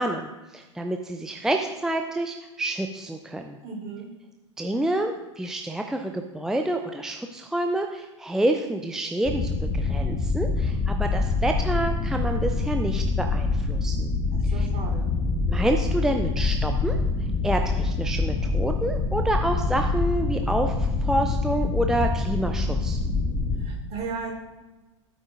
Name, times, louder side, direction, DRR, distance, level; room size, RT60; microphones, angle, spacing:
voice 1, 0.0-3.6 4.6-14.1 14.4-14.7 15.5-17.0 17.4-23.0, right 1 dB, 5° right, 4 dB, 0.5 m, -28 dB
voice 2, 3.6-4.1 14.3-15.1 23.6-24.3, right 5 dB, 40° right, -1 dB, 3.9 m, -35 dB
sound 1, 9.2-23.7, left 3 dB, 20° left, 1.3 m, -25 dB
15.5 x 8.9 x 2.6 m, 1.2 s
figure-of-eight pair, 85°, 16 cm